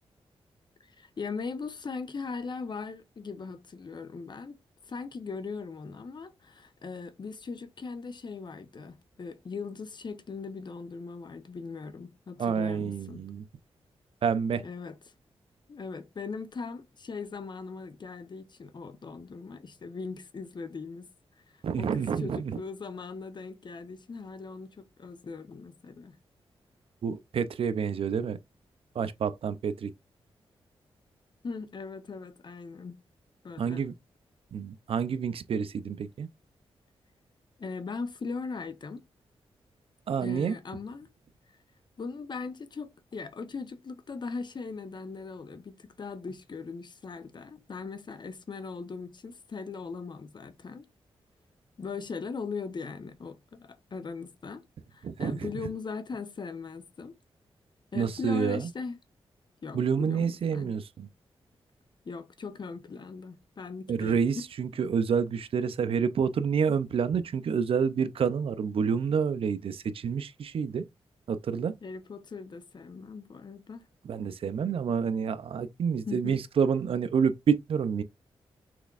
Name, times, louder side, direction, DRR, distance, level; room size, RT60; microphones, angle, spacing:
voice 1, 1.0-4.6 4.8-13.2 14.6-15.0 15.7-21.1 21.8-26.2 31.4-33.0 33.4-33.8 37.6-39.0 40.2-41.1 42.0-50.9 51.8-54.6 54.9-57.1 57.9-59.0 59.6-60.8 62.0-64.2 71.8-73.8 76.1-76.4, left 4 dB, 50° left, 0.9 m, -39 dB
voice 2, 12.4-13.5 14.2-14.6 21.6-22.6 27.0-28.4 28.9-29.9 33.6-33.9 34.5-36.3 40.1-40.6 55.0-55.5 57.9-58.7 59.7-61.1 63.9-70.8 71.3-71.7 74.0-78.0, right 6 dB, 65° right, 0.5 m, -28 dB
6.0 x 3.4 x 2.5 m
cardioid pair, 75°, 10 cm